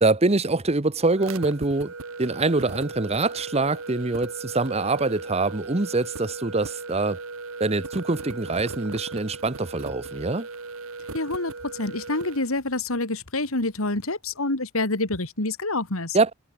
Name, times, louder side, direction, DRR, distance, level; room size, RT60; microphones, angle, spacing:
voice 1, 0.0-1.9 2.2-7.2 7.6-10.5 16.1-16.3, right 3 dB, 30° right, 1.1 m, -24 dB
sound 1, 1.2-12.5, right 3 dB, 70° right, 2.0 m, -37 dB
voice 2, 11.1-16.2, left 2 dB, 70° left, 3.0 m, -27 dB
head